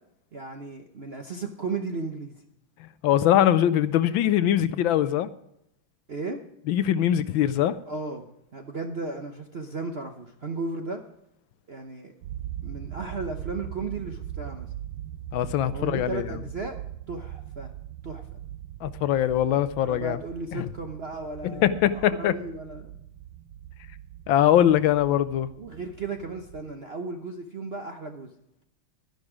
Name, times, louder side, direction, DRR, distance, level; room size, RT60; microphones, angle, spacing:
voice 1, 0.3-2.4 6.1-6.4 7.9-11.0 11.7-12.1 12.6-14.7 15.7-16.8 17.1-17.7 18.0-18.2 19.8-23.0 25.6-28.3, right 3 dB, 50° right, 4 dB, 0.8 m, -35 dB
voice 2, 3.0-5.3 6.7-7.7 15.3-16.2 18.8-20.2 20.5-20.7 21.4-22.3 24.3-25.5, left 11 dB, 75° left, 14 dB, 1.3 m, -22 dB
sound 1, 12.2-26.7, right 12 dB, 85° right, 1.6 m, -40 dB
12.0 x 10.5 x 4.9 m, 0.77 s
omnidirectional pair, 2.2 m